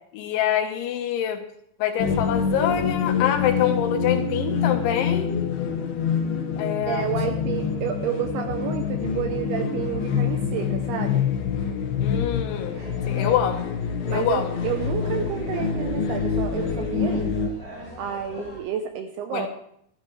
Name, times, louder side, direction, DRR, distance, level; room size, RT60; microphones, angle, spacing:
voice 1, 0.1-1.4 1.8-5.5 6.6-7.1 12.0-13.7 14.1-14.5 19.3-19.5, left 9 dB, 80° left, 5 dB, 3.5 m, -25 dB
sound 1, 2.0-17.5, left 6 dB, 65° left, 2.9 m, -26 dB
voice 2, 6.9-11.2 13.2-13.4 14.1-17.4 18.0-19.5, right 9 dB, 80° right, 6 dB, 2.3 m, -30 dB
sound 2, 12.7-18.6, right 1 dB, 25° right, 4.1 m, -40 dB
14.0 x 13.0 x 3.2 m, 0.69 s
omnidirectional pair, 5.4 m